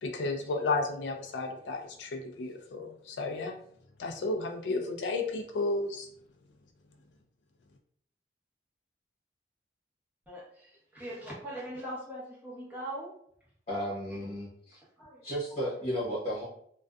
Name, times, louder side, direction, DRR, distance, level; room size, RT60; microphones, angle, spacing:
voice 1, 0.0-3.6 4.0-6.1, left 3 dB, 80° left, 2 dB, 0.4 m, -33 dB
voice 2, 10.3-13.1 14.1-14.3 15.0-15.2 15.6-15.7, right 1 dB, 10° right, -7 dB, 0.8 m, -41 dB
voice 3, 13.7-14.8 15.2-16.4, equal, 40° left, -11 dB, 0.9 m, -34 dB
2.5 x 2.3 x 2.2 m, 0.66 s
head